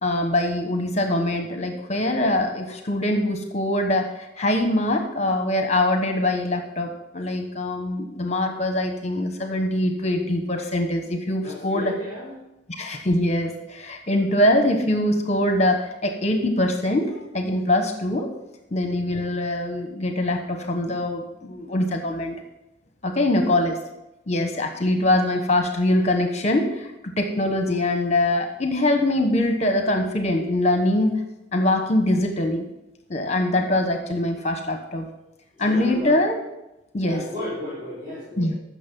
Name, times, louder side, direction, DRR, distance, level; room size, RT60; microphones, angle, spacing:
voice 1, 0.0-11.9 12.7-18.3 18.7-22.3 23.0-23.8 24.3-31.1 31.5-32.7 33.1-35.1 35.6-36.4 36.9-37.2 38.4-38.6, left 1 dB, 40° left, 5 dB, 1.1 m, -23 dB
voice 2, 11.4-12.3 23.1-23.6 35.5-36.1 37.0-38.5, left 1 dB, 25° right, -9 dB, 4.2 m, -34 dB
15.0 x 6.5 x 5.4 m, 0.93 s
head